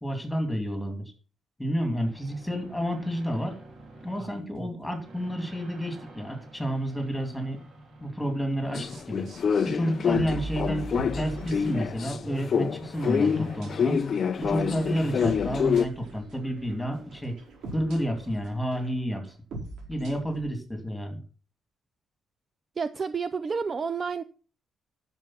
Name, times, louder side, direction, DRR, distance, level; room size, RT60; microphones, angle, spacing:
voice 1, 0.0-1.1 1.6-3.6 4.0-7.6 8.0-9.3 9.6-10.9 11.2-14.0 14.4-17.3 17.7-19.3 19.9-21.2, equal, ahead, 2.6 m, -30 dB
sound 1, 2.0-18.4, right 2 dB, 50° right, 3.6 m, -46 dB
sound 2, 8.7-12.2 12.5-15.8, left 7 dB, 40° left, 0.5 m, -27 dB
sound 3, 10.1-12.5 12.8-13.2 13.6-13.7 14.2-16.7 17.1-20.4, right 2 dB, 75° right, 4.6 m, -40 dB
voice 2, 22.8-24.2, right 5 dB, 30° right, 0.4 m, -30 dB
10.5 x 7.0 x 5.8 m
cardioid pair, 175°, 0 cm